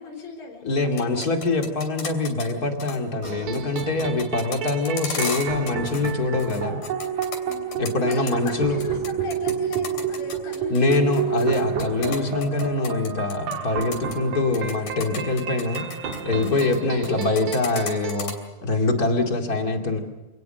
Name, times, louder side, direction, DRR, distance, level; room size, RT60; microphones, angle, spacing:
voice 1, 0.0-1.4 2.0-2.1 7.4-11.3 16.5-16.6 18.7-18.9, left 4 dB, 90° left, 0 dB, 5.9 m, -38 dB
voice 2, 0.6-6.8 7.8-8.8 10.7-15.9 16.2-18.4 18.6-20.0, left 3 dB, 30° left, 3 dB, 2.1 m, -24 dB
sound 1, 0.8-2.5 2.8-3.0 3.2-6.1 6.4-8.5 8.8-13.6 13.8-14.2 14.5-16.8 17.0-18.3, left 5 dB, 50° left, 4.2 m, -34 dB
sound 2, 3.2-18.2, right 8 dB, 55° right, 2.5 m, -30 dB
27.0 x 18.5 x 6.6 m, 1.1 s
omnidirectional pair, 4.4 m